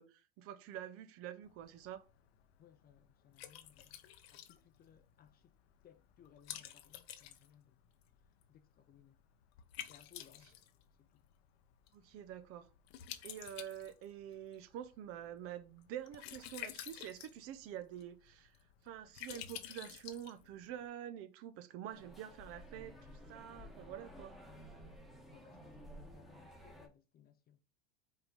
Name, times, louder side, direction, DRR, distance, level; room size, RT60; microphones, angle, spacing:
voice 1, 0.0-2.0 11.9-12.7 13.2-18.6 18.8-23.0 23.3-24.3, right 10 dB, 50° right, 0.8 m, -47 dB
Liquid, 1.4-20.9, left 11 dB, 85° left, 1.0 m, -52 dB
voice 2, 2.6-4.0 4.3-5.5 5.8-7.8 8.2-9.2 9.9-10.7 11.0-11.2 25.3-27.6, left 9 dB, 30° left, 0.6 m, -64 dB
sound 1, 21.9-26.9, equal, ahead, 1.2 m, -54 dB
5.6 x 3.8 x 5.1 m
supercardioid pair, 125°, 31 cm